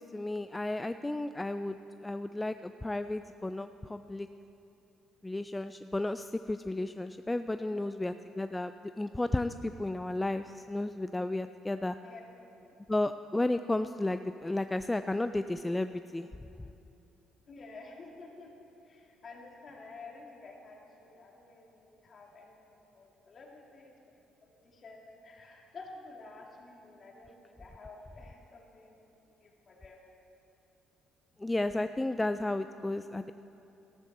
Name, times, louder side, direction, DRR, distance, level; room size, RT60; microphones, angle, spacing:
voice 1, 0.0-1.8 2.0-4.3 5.2-12.0 12.9-16.3 31.4-33.3, left 2 dB, 15° left, 10 dB, 0.3 m, -33 dB
voice 2, 7.4-7.8 12.0-12.2 17.5-23.9 24.4-29.0 29.4-30.0 31.3-31.6, left 3 dB, 45° left, 0 dB, 2.2 m, -51 dB
13.5 x 13.0 x 4.2 m, 2.9 s
cardioid pair, 85°, 0 cm